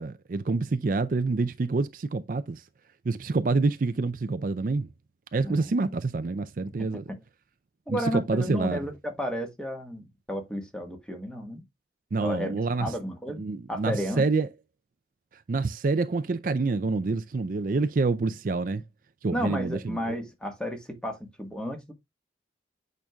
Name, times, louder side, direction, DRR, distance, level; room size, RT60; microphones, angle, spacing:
voice 1, 0.0-2.6 3.1-4.9 5.3-7.0 7.9-8.8 12.1-12.9 13.4-14.5 15.5-18.8 19.2-20.1, right 3 dB, 50° right, 0.4 m, -27 dB
voice 2, 7.9-11.6 12.2-13.4 13.7-14.3 19.3-21.9, equal, 5° left, 1.4 m, -32 dB
8.7 x 5.2 x 2.3 m
head